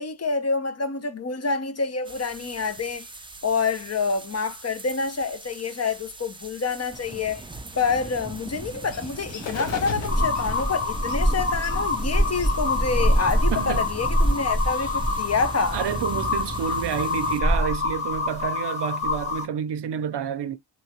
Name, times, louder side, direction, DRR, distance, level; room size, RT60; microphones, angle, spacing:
voice 1, 0.0-3.1 3.4-7.5 7.8-15.8, left 5 dB, 35° left, 0.6 m, -27 dB
sound 1, 2.0-17.4, right 3 dB, 15° right, 0.3 m, -38 dB
Bird, 7.4-18.8, left 6 dB, 85° left, 0.8 m, -41 dB
sound 2, 10.1-19.4, left 1 dB, 15° left, 1.1 m, -25 dB
voice 2, 13.5-13.9 15.7-20.6, right 8 dB, 70° right, 0.6 m, -29 dB
2.9 x 2.2 x 2.8 m
wide cardioid pair, 105°, 43 cm